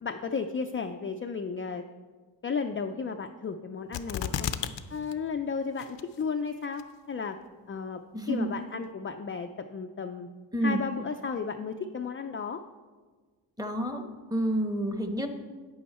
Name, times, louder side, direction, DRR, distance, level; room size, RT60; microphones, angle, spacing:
voice 1, 0.0-1.8 2.4-4.5 4.9-7.4 7.7-8.0 8.3-10.3 10.6-12.6, left 5 dB, 30° left, 5 dB, 0.4 m, -34 dB
sound 1, 3.9-4.8 5.1-5.2 5.8-6.2 6.8-6.9, left 10 dB, 65° left, 0.6 m, -32 dB
voice 2, 8.1-8.5 10.5-10.8 13.6-14.0 14.3-15.3, equal, 10° right, 6 dB, 1.0 m, -28 dB
9.3 x 8.6 x 4.2 m, 1.4 s
cardioid pair, 75°, 46 cm